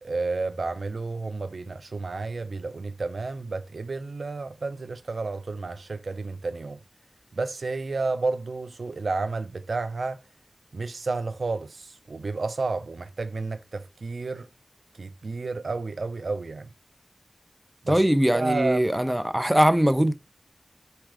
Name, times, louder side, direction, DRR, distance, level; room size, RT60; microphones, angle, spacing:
voice 1, 0.0-6.8 7.3-10.2 10.7-14.5 15.0-16.7 17.8-18.0 18.3-18.9, right 3 dB, 90° right, 0.3 m, -31 dB
voice 2, 17.9-20.1, equal, 15° right, 0.5 m, -21 dB
4.3 x 2.4 x 4.7 m
wide cardioid pair, 45°, 0 cm